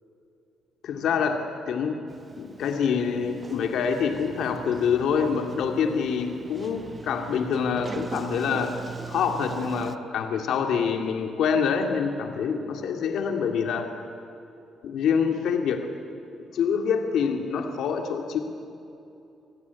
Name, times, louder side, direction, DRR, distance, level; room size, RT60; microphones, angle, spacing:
voice 1, 0.8-2.0 2.4-8.8 9.1-13.9 14.8-15.9 16.5-18.4, left 6 dB, 75° left, 5 dB, 2.4 m, -26 dB
Sliding door, 2.1-10.0, right 5 dB, 30° right, 1.0 m, -41 dB
29.0 x 19.5 x 9.6 m, 2.8 s
cardioid pair, 115°, 0 cm